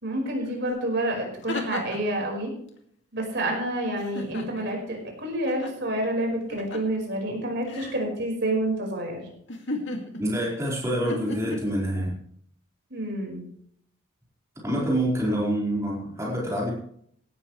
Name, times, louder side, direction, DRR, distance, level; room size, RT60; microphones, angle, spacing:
voice 1, 0.0-2.5 3.1-9.2 12.9-13.4, right 1 dB, 60° right, 1 dB, 5.0 m, -28 dB
sound 1, 0.7-0.8 1.2-2.2 4.0-4.8 5.5-5.7 6.5-7.0 7.6-8.0 9.5-10.5 11.1-11.6, left 2 dB, 60° left, 2.4 m, -35 dB
voice 2, 10.2-12.1 14.6-16.7, right 1 dB, 15° right, -5 dB, 4.5 m, -26 dB
17.5 x 13.0 x 3.3 m, 0.65 s
head